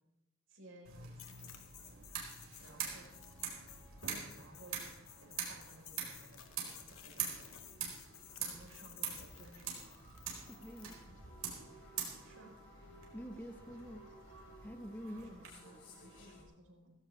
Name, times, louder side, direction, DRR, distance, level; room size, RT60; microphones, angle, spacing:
voice 1, 0.5-1.5 2.6-3.1 4.3-4.9 5.2-7.6 8.4-9.8 12.2-12.5 15.1-16.9, right 1 dB, 70° right, 1 dB, 4.3 m, -58 dB
sound 1, 0.8-15.5, right 7 dB, 85° right, 4.5 m, -45 dB
sound 2, 1.2-11.0, left 10 dB, 80° left, 2.0 m, -56 dB
sound 3, 2.6-16.4, equal, 65° left, 6.4 m, -60 dB
voice 2, 10.5-11.0 13.1-14.1 14.6-15.3, equal, 10° left, 7 dB, 0.8 m, -46 dB
17.5 x 16.0 x 3.4 m, 0.92 s
head